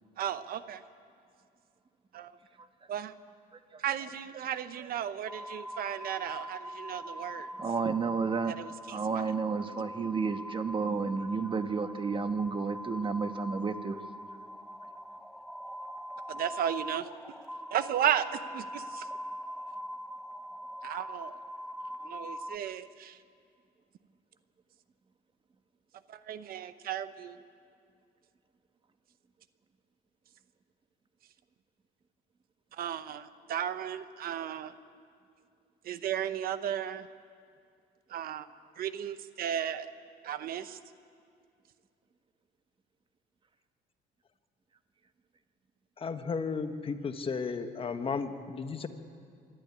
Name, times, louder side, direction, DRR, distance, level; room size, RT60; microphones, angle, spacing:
voice 1, 0.2-0.8 2.1-2.3 2.9-3.1 3.8-7.5 8.6-9.0 16.3-17.1 17.7-19.1 20.8-21.4 22.0-23.2 26.1-27.4 32.7-34.7 35.8-37.1 38.1-38.5 38.8-39.9 40.2-40.8, right 10 dB, 60° right, 13 dB, 0.9 m, -34 dB
sound 1, 5.3-22.6, equal, ahead, 0.6 m, -43 dB
voice 2, 7.6-8.6 8.9-14.0, right 5 dB, 30° right, 9 dB, 1.2 m, -31 dB
voice 3, 46.0-48.9, left 5 dB, 35° left, 8 dB, 1.3 m, -34 dB
25.0 x 12.5 x 9.7 m, 2.4 s
cardioid pair, 110°, 17 cm